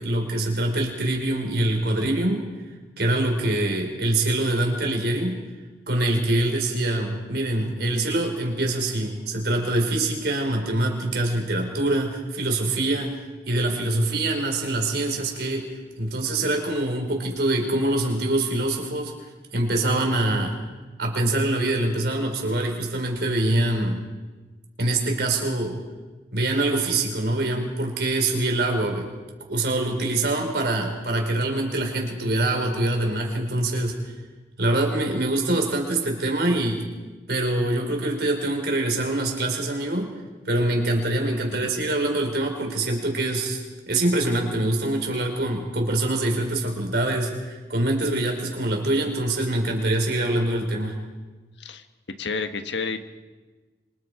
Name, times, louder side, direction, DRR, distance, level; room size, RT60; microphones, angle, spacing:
voice 1, 0.0-2.5 3.0-5.4 5.9-13.1 13.5-15.6 16.0-20.6 21.0-24.0 24.8-25.8 26.3-29.1 29.5-33.9 34.6-36.8 37.3-40.1 40.4-51.0, right 1 dB, 65° right, 2 dB, 4.8 m, -24 dB
voice 2, 52.2-53.0, left 4 dB, 85° left, 8 dB, 1.5 m, -30 dB
26.5 x 26.5 x 5.1 m, 1.3 s
head